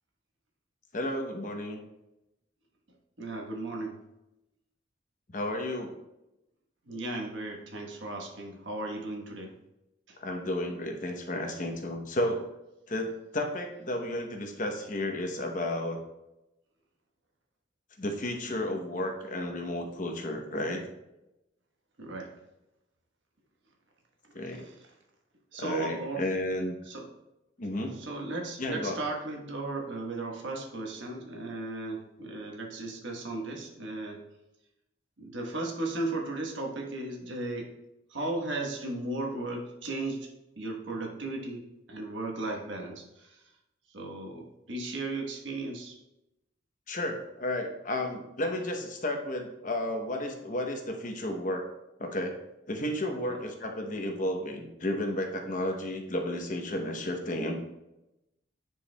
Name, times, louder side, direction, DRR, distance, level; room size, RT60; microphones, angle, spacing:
voice 1, 0.9-1.8 5.3-5.9 10.2-12.4 12.9-16.0 18.0-20.8 24.3-24.7 25.6-26.7 27.6-27.9 28.6-29.0 46.9-51.6 52.0-52.3 52.7-57.6, left 1 dB, 40° left, 3 dB, 0.9 m, -32 dB
voice 2, 3.2-4.0 6.8-9.5 10.1-10.2 22.0-22.3 25.5-26.2 26.9-27.1 28.0-34.2 35.2-37.7 38.1-40.3 40.6-43.4 43.9-46.0 53.3-53.4, right 2 dB, 75° right, 0 dB, 1.3 m, -36 dB
9.9 x 4.7 x 2.3 m, 0.92 s
head